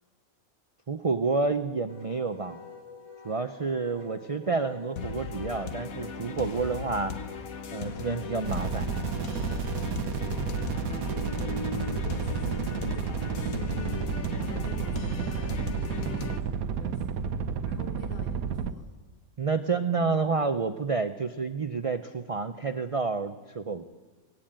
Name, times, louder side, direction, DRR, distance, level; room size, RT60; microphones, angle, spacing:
voice 1, 0.9-2.6 3.2-7.1 7.7-8.9 19.4-23.8, right 4 dB, 40° right, 9 dB, 0.4 m, -29 dB
Wind instrument woodwind instrument, 1.9-16.6, left 4 dB, 60° left, 3.5 m, -49 dB
sound 1, 5.0-16.4, left 6 dB, 75° left, 1.6 m, -37 dB
sound 2, 8.4-18.7, right 7 dB, 80° right, 1.3 m, -31 dB
voice 2, 10.7-17.2 17.6-18.9, left 6 dB, 45° left, 3 dB, 1.3 m, -45 dB
18.5 x 16.5 x 8.7 m, 1.3 s
omnidirectional pair, 1.5 m